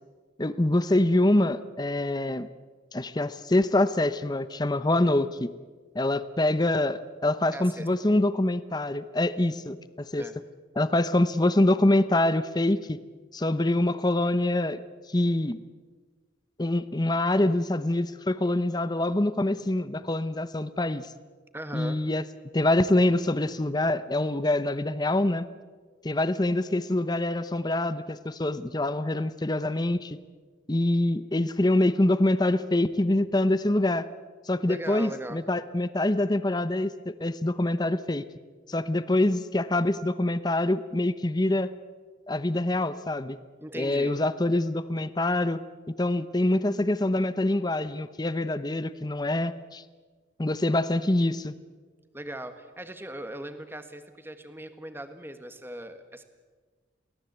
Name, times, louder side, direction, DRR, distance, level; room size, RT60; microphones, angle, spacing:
voice 1, 0.4-2.5 2.9-5.5 5.9-10.3 10.8-13.0 13.3-14.8 15.1-15.6 16.6-21.1 21.7-22.2 22.5-25.4 26.0-30.2 30.7-34.1 34.5-38.2 38.7-41.7 42.3-43.4 43.8-45.6 46.0-49.8 50.4-51.6, left 1 dB, 20° left, 14 dB, 0.8 m, -25 dB
voice 2, 7.5-7.9 10.2-10.4 21.5-22.0 34.7-35.4 43.6-44.2 52.1-56.2, right 1 dB, 10° right, 8 dB, 1.5 m, -39 dB
23.5 x 17.5 x 8.1 m, 1.4 s
head